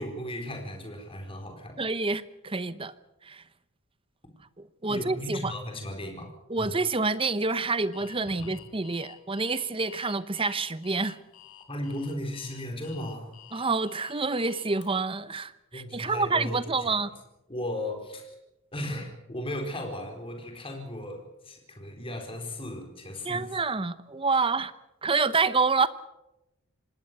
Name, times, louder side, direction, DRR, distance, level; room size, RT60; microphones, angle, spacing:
voice 1, 0.0-1.8 4.9-6.7 8.3-8.5 11.7-13.4 15.7-17.1 17.5-18.4 18.7-23.6 24.3-24.4, left 1 dB, 25° left, 4.3 m, -36 dB
voice 2, 1.8-2.9 3.2-3.4 4.8-5.5 6.5-11.2 13.5-17.1 23.2-24.7 25.0-25.9, right 4 dB, 25° right, 0.8 m, -27 dB
Alarm, 7.9-14.9, left 11 dB, 80° left, 3.3 m, -50 dB
26.0 x 19.0 x 6.7 m
head